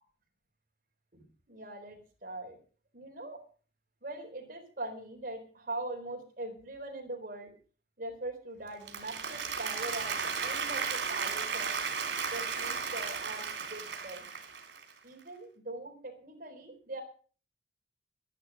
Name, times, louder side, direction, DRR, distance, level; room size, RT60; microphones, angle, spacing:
voice 1, 1.1-2.6 2.9-3.4 4.0-7.5 8.0-11.7 12.3-14.3 15.0-17.0, right 2 dB, 50° right, 3 dB, 4.1 m, -42 dB
Applause, 8.7-14.9, right 5 dB, 85° right, 3.3 m, -35 dB
12.0 x 11.5 x 6.4 m, 0.41 s
head